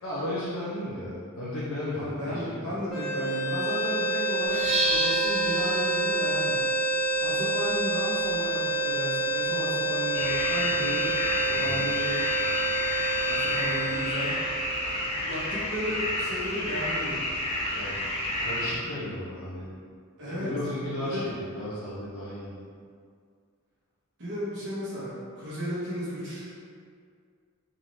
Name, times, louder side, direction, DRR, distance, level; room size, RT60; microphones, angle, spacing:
voice 1, 0.0-2.6 11.5-11.8 17.7-18.0 18.4-19.7 20.3-22.6, left 1 dB, 70° left, -9 dB, 0.7 m, -34 dB
voice 2, 1.9-6.6 7.0-11.1 11.4-12.2 13.2-14.3 15.2-17.3 20.2-20.5 21.0-21.3 24.2-26.5, equal, 55° right, -10 dB, 1.4 m, -34 dB
sound 1, 2.9-15.1, right 1 dB, ahead, 0.9 m, -28 dB
sound 2, 4.4-12.2, right 2 dB, 25° right, 0.4 m, -35 dB
sound 3, 10.1-18.8, left 1 dB, 30° left, 0.6 m, -30 dB
3.7 x 2.7 x 3.1 m, 2.1 s
head